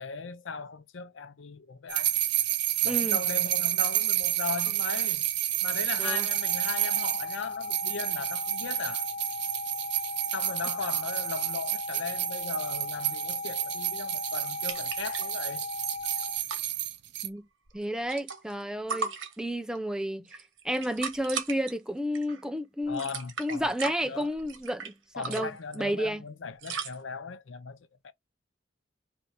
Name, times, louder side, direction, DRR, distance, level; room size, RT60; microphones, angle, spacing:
voice 1, 0.0-2.2 2.8-5.3 5.6-9.1 10.3-15.7 22.9-24.3 25.1-27.8 28.0-28.1, left 5 dB, 85° left, 0.6 m, -38 dB
sound 1, 1.9-17.3, right 13 dB, 60° right, 0.5 m, -30 dB
voice 2, 2.8-3.2 6.0-6.3 17.2-17.5 17.7-19.1 19.4-20.2 20.6-23.0 23.4-25.5 25.8-26.2, equal, 5° right, 0.4 m, -31 dB
sound 2, 6.4-16.4, left 5 dB, 45° left, 0.7 m, -37 dB
sound 3, 14.7-15.5 15.7-15.8 16.0-16.6 17.7-18.6 18.9-19.8 20.3-21.7 22.2-22.4 22.8-24.9 25.2-25.8 26.6-27.0, right 5 dB, 85° right, 1.1 m, -37 dB
4.5 x 2.8 x 4.0 m
head